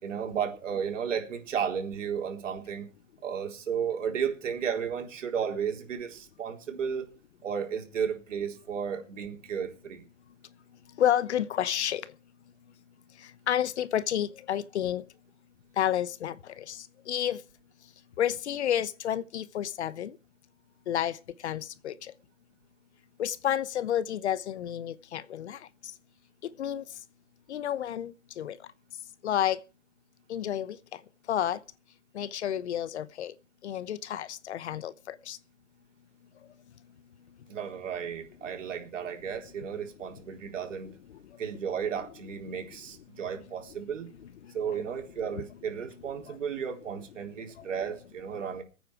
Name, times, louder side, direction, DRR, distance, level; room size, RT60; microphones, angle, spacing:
voice 1, 0.0-2.9 3.2-7.1 7.4-10.0 37.5-40.9 41.4-44.1 44.5-48.6, right 7 dB, 70° right, 4.1 m, -33 dB
voice 2, 11.0-12.0 13.5-15.0 15.8-16.3 16.7-16.8 17.1-17.4 18.2-20.1 20.9-21.1 21.4-21.9 23.2-25.6 26.6-26.8 27.5-28.1 28.4-28.5 29.2-29.6 30.3-30.7 31.3-31.6 32.2-33.3 33.6-34.9 35.3-35.4, left 10 dB, 60° left, 1.0 m, -29 dB
21.5 x 9.2 x 4.8 m
hypercardioid pair, 155°, 38 cm